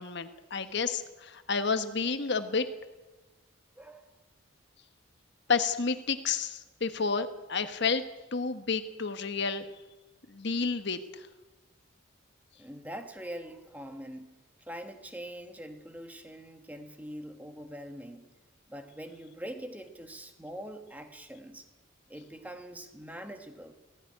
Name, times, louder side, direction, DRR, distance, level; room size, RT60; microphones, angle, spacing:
voice 1, 0.0-2.7 5.5-8.0 8.3-9.7 10.3-11.3, left 5 dB, 55° left, 10 dB, 1.2 m, -30 dB
voice 2, 3.8-4.2 12.6-14.4 14.7-18.2 18.7-21.6 22.1-23.7, equal, 5° right, 6 dB, 1.4 m, -43 dB
16.5 x 16.0 x 9.9 m, 1.1 s
head